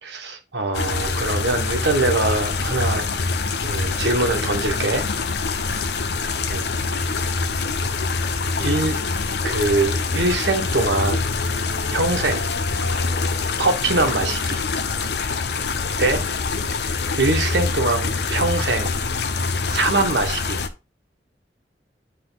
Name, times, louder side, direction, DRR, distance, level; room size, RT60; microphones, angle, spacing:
voice 1, 0.0-3.1 3.6-5.0 6.5-6.7 7.1-7.2 8.6-9.0 9.4-11.3 11.9-12.5 13.6-14.6 16.0-16.2 17.1-18.9 19.7-20.6, right 2 dB, 80° right, 1.5 m, -23 dB
sound 1, 0.7-20.7, left 4 dB, 70° left, 0.7 m, -25 dB
9.8 x 3.3 x 4.0 m
head